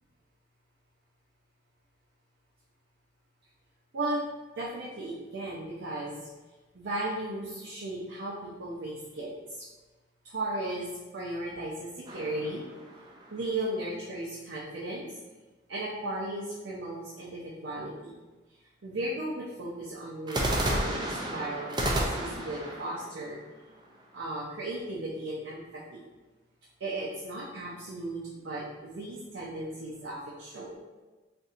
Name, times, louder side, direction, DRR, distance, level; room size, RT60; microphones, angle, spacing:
voice 1, 4.6-6.3 6.7-9.7 10.2-12.7 13.3-15.1 15.7-18.2 18.8-23.4 24.1-26.0 26.8-30.8, right 1 dB, 75° right, -6 dB, 0.6 m, -36 dB
sound 1, 12.1-13.5 20.3-24.2, right 1 dB, 25° right, 0.4 m, -32 dB
4.0 x 2.6 x 2.5 m, 1.2 s
head